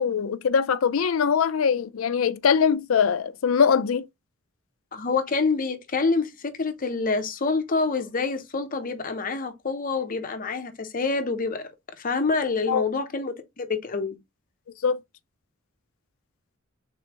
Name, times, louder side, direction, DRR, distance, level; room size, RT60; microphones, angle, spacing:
voice 1, 0.0-4.1 12.7-12.8 14.8-15.0, left 6 dB, 90° left, 0.4 m, -22 dB
voice 2, 4.9-11.6 12.0-14.2, left 4 dB, 45° left, 0.7 m, -27 dB
3.7 x 3.3 x 2.9 m
head